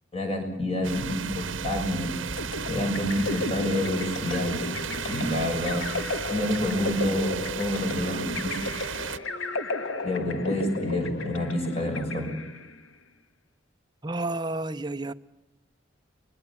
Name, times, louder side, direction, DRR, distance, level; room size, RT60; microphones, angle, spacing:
voice 1, 0.1-2.1 2.7-4.6 5.0-5.9 6.3-8.6 10.0-12.3, left 1 dB, 30° left, 6.7 m, -28 dB
sound 1, 0.8-9.2, right 6 dB, 85° right, 0.9 m, -34 dB
sound 2, 1.8-12.6, left 1 dB, 55° left, 5.1 m, -45 dB
sound 3, 2.4-12.8, left 2 dB, 90° left, 1.6 m, -34 dB
voice 2, 14.0-15.1, right 2 dB, 20° right, 0.7 m, -30 dB
24.5 x 21.0 x 7.2 m
head